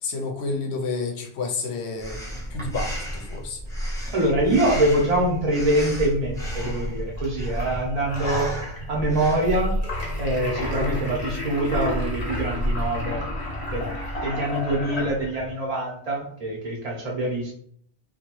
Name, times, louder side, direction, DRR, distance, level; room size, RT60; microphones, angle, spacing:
voice 1, 0.0-2.2 2.5-3.6, left 3 dB, 70° left, 4 dB, 0.8 m, -30 dB
Breathing, 2.0-9.6, equal, 5° left, 0.6 m, -33 dB
voice 2, 4.1-8.5 8.9-9.8 10.2-13.3 13.7-13.9 14.2-17.5, right 1 dB, 35° right, -2 dB, 0.8 m, -24 dB
sound 1, 5.8-15.5, left 1 dB, 40° left, 0.8 m, -30 dB
2.7 x 2.3 x 2.9 m, 0.64 s
omnidirectional pair, 1.2 m